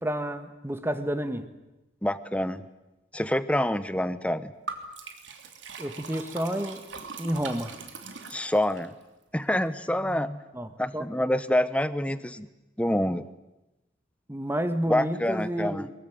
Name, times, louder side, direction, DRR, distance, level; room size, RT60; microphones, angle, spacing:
voice 1, 0.0-1.5 5.8-6.8 7.2-7.7 10.5-11.1 14.3-15.9, equal, 10° right, 10 dB, 1.6 m, -30 dB
voice 2, 2.0-2.6 3.1-4.5 8.3-9.0 9.3-10.4 10.8-12.5 12.8-13.2 14.9-15.9, left 1 dB, 5° left, 14 dB, 0.9 m, -27 dB
Liquid, 4.7-8.9, right 4 dB, 80° right, 3.1 m, -41 dB
23.5 x 21.5 x 9.3 m, 0.99 s
head